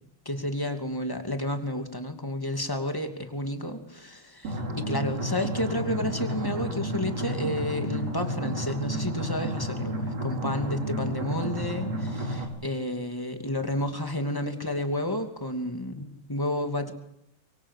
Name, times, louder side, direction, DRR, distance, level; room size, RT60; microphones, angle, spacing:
voice 1, 0.2-16.9, left 1 dB, 10° left, 6 dB, 2.1 m, -31 dB
sound 1, 4.4-12.4, right 1 dB, 50° right, 5.8 m, -31 dB
25.5 x 23.0 x 8.4 m, 0.75 s
omnidirectional pair, 3.6 m